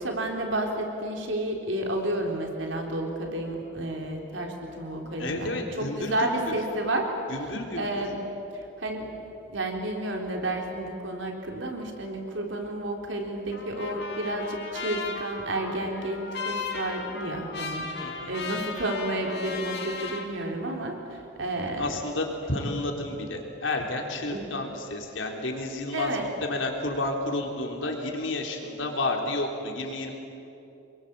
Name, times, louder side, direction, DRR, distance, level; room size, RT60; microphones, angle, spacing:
voice 1, 0.0-7.1 7.8-8.2 8.5-9.1 9.5-17.9 18.3-21.9 24.3-24.5 25.9-26.3, right 1 dB, 85° right, 2 dB, 3.8 m, -31 dB
voice 2, 5.2-6.5 7.3-8.0 18.0-18.3 21.8-30.1, left 2 dB, 85° left, 1 dB, 3.8 m, -31 dB
Trumpet, 13.5-20.3, left 4 dB, 60° left, 3.7 m, -36 dB
27.5 x 22.5 x 8.4 m, 2.8 s
head